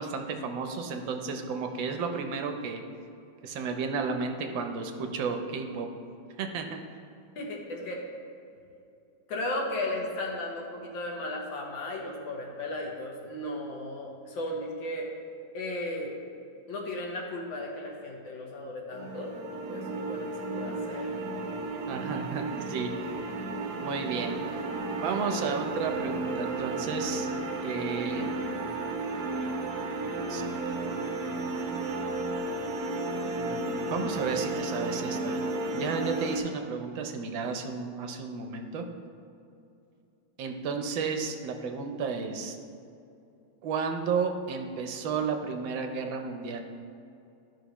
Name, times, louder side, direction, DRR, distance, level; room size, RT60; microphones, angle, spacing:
voice 1, 0.0-2.8 3.4-5.9 6.4-6.8 21.9-23.1 23.7-24.4 25.0-27.3 27.6-28.3 30.3-30.8 33.2-35.4 35.7-38.8 40.4-42.6 43.6-46.6, right 5 dB, 75° right, 5 dB, 1.4 m, -33 dB
voice 2, 7.3-8.0 9.3-15.1 15.5-16.1 16.7-20.3 20.5-21.2, left 1 dB, 75° left, -1 dB, 1.8 m, -35 dB
sound 1, 18.9-36.4, right 2 dB, 60° right, 1.2 m, -33 dB
12.5 x 5.5 x 3.0 m, 2.7 s
omnidirectional pair, 2.2 m